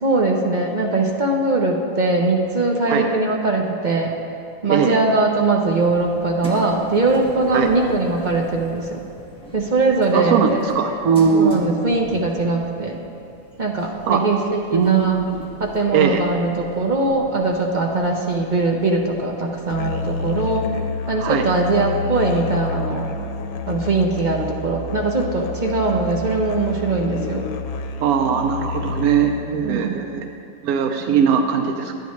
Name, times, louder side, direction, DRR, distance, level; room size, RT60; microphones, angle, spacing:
voice 1, 0.0-4.1 4.6-9.0 9.5-11.0 11.3-13.0 13.6-15.2 15.6-20.7 21.1-23.1 23.7-27.5 29.6-30.0, right 3 dB, 40° right, 0 dB, 0.7 m, -21 dB
sound 1, 5.7-20.5, left 1 dB, 5° left, 1.0 m, -42 dB
voice 2, 10.1-11.7 14.1-14.2 14.7-15.4 15.9-16.2 21.2-21.5 28.0-30.2 30.6-31.9, right 6 dB, 80° right, 4 dB, 1.1 m, -19 dB
Musical instrument, 19.7-29.5, left 4 dB, 85° left, 1.1 m, -29 dB
11.5 x 9.3 x 3.1 m, 2.5 s
omnidirectional pair, 1.5 m